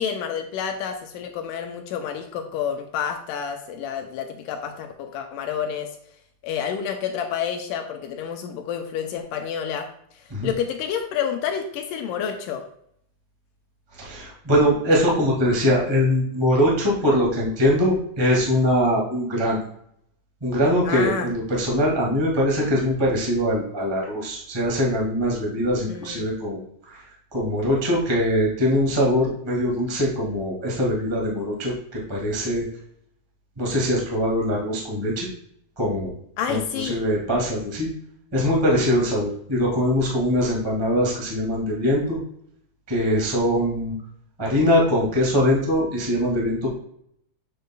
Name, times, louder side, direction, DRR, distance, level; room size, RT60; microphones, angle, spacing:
voice 1, 0.0-5.9 6.4-9.9 10.1-12.6 20.9-21.3 25.9-26.3 36.4-37.0, left 8 dB, 80° left, 5 dB, 2.1 m, -29 dB
voice 2, 13.9-19.6 20.4-27.1 27.3-32.6 33.6-35.3 35.8-36.1 36.5-37.9 38.3-42.2 42.9-43.9 44.4-46.7, equal, 25° right, -3 dB, 0.5 m, -22 dB
7.7 x 6.6 x 2.2 m, 0.69 s
omnidirectional pair, 4.1 m